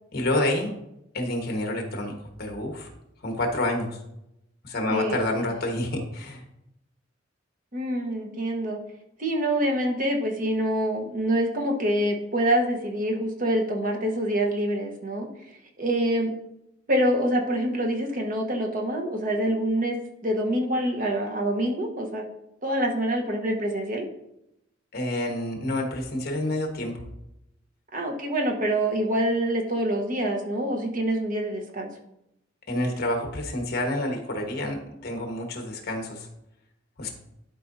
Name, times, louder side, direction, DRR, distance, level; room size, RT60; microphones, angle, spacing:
voice 1, 0.1-0.7 1.1-2.1 2.4-2.9 3.2-3.9 4.6-6.4 24.9-26.9 32.7-34.8 35.0-36.3 37.0-37.1, left 1 dB, 55° left, 2 dB, 1.4 m, -28 dB
voice 2, 4.9-5.5 7.7-8.8 9.2-15.3 15.8-16.3 16.9-20.0 20.2-22.2 22.6-24.1 27.9-31.9, right 1 dB, 45° right, 2 dB, 1.1 m, -26 dB
11.5 x 4.6 x 2.7 m, 0.83 s
head